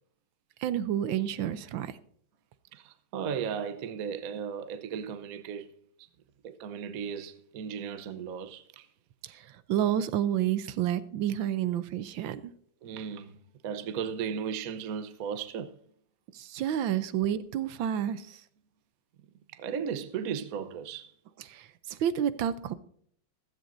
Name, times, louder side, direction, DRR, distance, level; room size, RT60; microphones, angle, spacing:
voice 1, 0.6-2.0 9.2-12.5 16.3-18.4 21.5-22.7, right 10 dB, 80° right, 1.5 m, -30 dB
voice 2, 2.7-5.7 6.0-6.1 6.4-8.9 12.8-15.8 19.5-21.1, right 7 dB, 55° right, 1.1 m, -36 dB
15.5 x 13.5 x 2.6 m
omnidirectional pair, 2.1 m